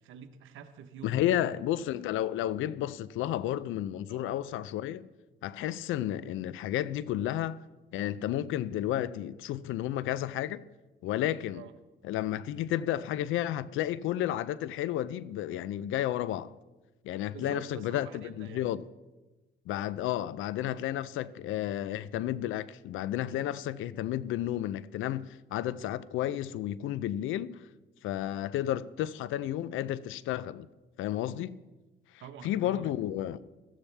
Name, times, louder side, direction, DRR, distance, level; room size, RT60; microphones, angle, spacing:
voice 1, 0.0-1.6 4.1-4.3 11.5-11.7 17.3-18.7 32.2-32.9, right 7 dB, 80° right, 1.1 m, -47 dB
voice 2, 1.0-5.1 5.4-7.6 7.9-10.6 11.0-11.6 12.0-16.5 17.0-18.8 19.7-27.6 28.0-30.7 31.0-31.6 32.4-33.4, left 12 dB, 85° left, 0.5 m, -32 dB
16.0 x 13.5 x 3.4 m
cardioid pair, 90°, 20 cm